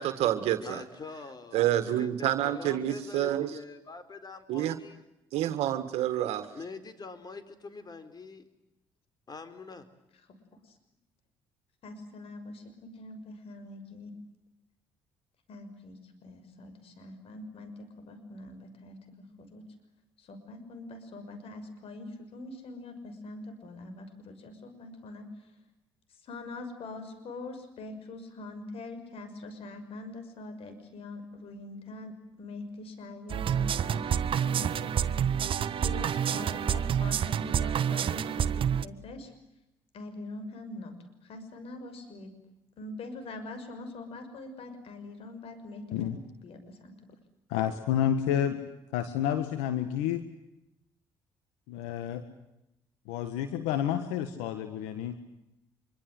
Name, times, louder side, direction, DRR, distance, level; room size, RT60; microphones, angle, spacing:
voice 1, 0.0-0.8 1.5-3.5 4.5-4.8 5.3-6.5, right 12 dB, 75° right, 10 dB, 1.7 m, -28 dB
voice 2, 0.6-5.0 6.5-8.4 9.3-9.9, left 4 dB, 40° left, 11 dB, 4.4 m, -44 dB
voice 3, 11.8-14.1 15.5-19.6 20.2-25.3 26.2-32.1 32.4-35.2 35.7-39.3 39.9-40.9 41.2-42.3 42.8-46.1 46.4-47.1, left 2 dB, 65° left, 9 dB, 6.2 m, -43 dB
sound 1, 33.3-38.9, right 8 dB, 55° right, 1.1 m, -28 dB
voice 4, 47.5-48.6 48.9-50.2 51.7-52.2 53.1-55.2, left 10 dB, 85° left, 9 dB, 1.7 m, -29 dB
26.0 x 23.5 x 7.9 m, 0.87 s
supercardioid pair, 60°, 11 cm